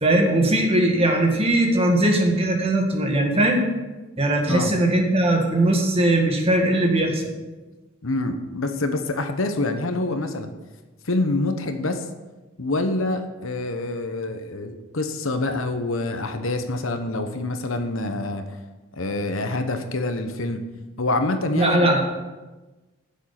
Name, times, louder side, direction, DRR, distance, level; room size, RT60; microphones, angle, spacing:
voice 1, 0.0-3.7 4.2-7.2 21.5-22.0, right 1 dB, 25° right, 2 dB, 1.7 m, -20 dB
voice 2, 8.0-10.5 11.0-12.0 12.6-18.4 19.0-20.6 21.0-22.0, left 2 dB, 70° left, 7 dB, 1.1 m, -26 dB
11.0 x 7.4 x 5.9 m, 1.2 s
head